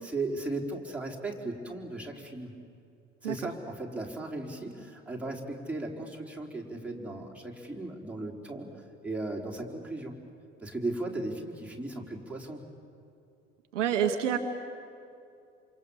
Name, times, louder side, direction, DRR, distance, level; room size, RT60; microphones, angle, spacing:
voice 1, 0.0-2.6 3.2-10.1 10.6-12.6, right 2 dB, 5° right, -2 dB, 4.2 m, -36 dB
voice 2, 13.7-14.4, right 9 dB, 70° right, 6 dB, 1.4 m, -27 dB
27.5 x 27.0 x 7.2 m, 2.5 s
figure-of-eight pair, 60°, 37 cm